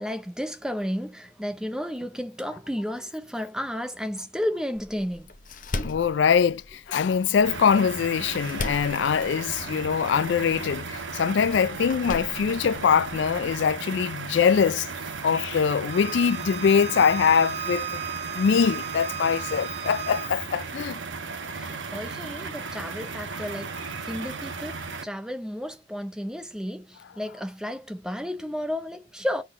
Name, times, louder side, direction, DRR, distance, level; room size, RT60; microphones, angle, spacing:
voice 1, 0.0-5.3 21.5-29.4, equal, 5° right, 0.6 m, -32 dB
Door, 4.7-13.7, left 2 dB, 45° left, 0.9 m, -39 dB
voice 2, 5.7-14.9 15.2-17.9 18.3-21.0, left 6 dB, 60° left, 0.3 m, -23 dB
sound 1, 7.4-25.0, right 4 dB, 70° right, 1.0 m, -36 dB
Bowed string instrument, 15.9-20.3, right 8 dB, 35° right, 0.8 m, -35 dB
6.4 x 3.9 x 5.5 m
head